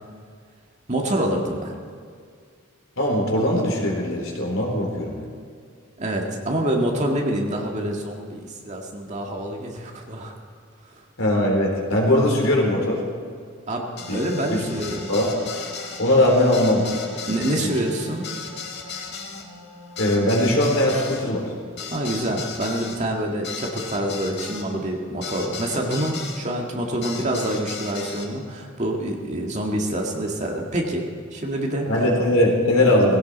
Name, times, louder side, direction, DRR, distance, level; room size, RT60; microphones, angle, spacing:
voice 1, 0.9-1.7 6.0-10.4 13.7-15.1 17.3-18.3 21.9-31.1 31.3-31.9, right 1 dB, 35° right, 0 dB, 1.9 m, -26 dB
voice 2, 3.0-5.2 11.2-13.0 14.1-14.2 15.1-15.3 16.0-16.9 17.6-17.7 20.0-21.5 31.9-33.2, left 1 dB, 75° left, -1 dB, 3.7 m, -20 dB
sound 1, 14.0-26.4 27.0-28.3, left 5 dB, 55° left, 1.9 m, -36 dB
19.0 x 16.5 x 4.2 m, 2.1 s
head